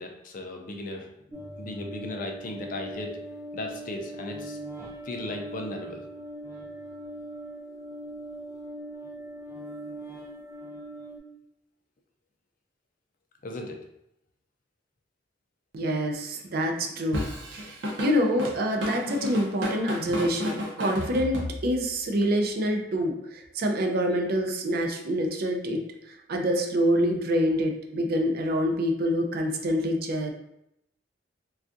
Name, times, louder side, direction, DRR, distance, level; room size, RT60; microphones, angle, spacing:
voice 1, 0.0-3.1 3.5-4.6 5.0-6.0 13.4-13.8 16.9-17.0, left 2 dB, 50° left, 3 dB, 0.4 m, -37 dB
sound 1, 1.3-11.2, right 1 dB, 15° right, 0.6 m, -40 dB
voice 2, 15.7-30.3, equal, 55° right, 3 dB, 0.5 m, -26 dB
Drum kit / Drum, 17.1-21.9, left 1 dB, 90° right, 0.7 m, -32 dB
3.4 x 2.3 x 2.5 m, 0.79 s
head